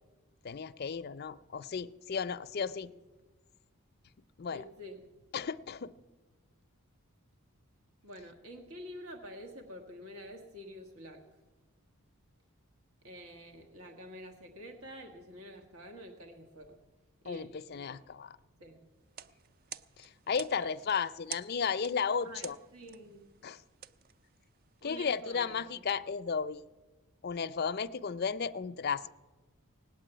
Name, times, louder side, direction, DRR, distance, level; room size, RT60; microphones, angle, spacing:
voice 1, 0.4-2.9 4.4-4.6 5.3-5.9 17.3-18.4 20.0-22.6 23.4-23.6 24.8-26.6 27.2-29.1, left 6 dB, 45° left, 11 dB, 0.4 m, -34 dB
voice 2, 2.6-3.0 4.5-5.1 8.0-11.2 13.0-16.8 17.2-18.0 18.6-18.8 20.6-20.7 22.2-23.3 24.8-25.6, equal, 70° right, 3 dB, 1.5 m, -48 dB
sound 1, 19.0-24.8, right 8 dB, 40° right, 0.4 m, -50 dB
18.0 x 8.4 x 9.0 m, 1.2 s
head